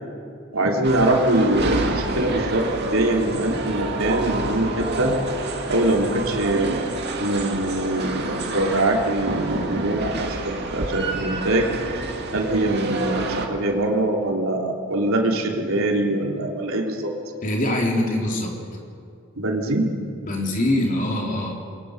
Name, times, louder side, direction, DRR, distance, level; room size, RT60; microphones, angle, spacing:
voice 1, 0.5-5.1 5.7-6.8 7.2-11.7 12.3-17.1 19.3-19.9, right 1 dB, 70° right, 0 dB, 3.3 m, -23 dB
sound 1, 0.8-13.5, right 2 dB, 50° right, 2.4 m, -28 dB
voice 2, 17.4-18.5 20.2-21.5, left 1 dB, 40° left, 0 dB, 3.7 m, -23 dB
27.5 x 22.0 x 6.6 m, 2.5 s
head